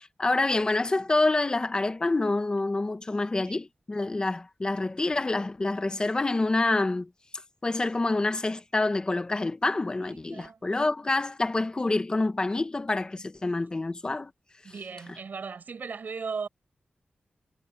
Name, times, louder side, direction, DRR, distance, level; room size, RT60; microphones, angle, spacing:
voice 1, 0.0-7.1 7.6-14.3, left 2 dB, 25° left, 1.3 m, -27 dB
voice 2, 10.0-10.6 14.6-16.5, right 5 dB, 60° right, 7.3 m, -37 dB
wide cardioid pair, 170°, 3 cm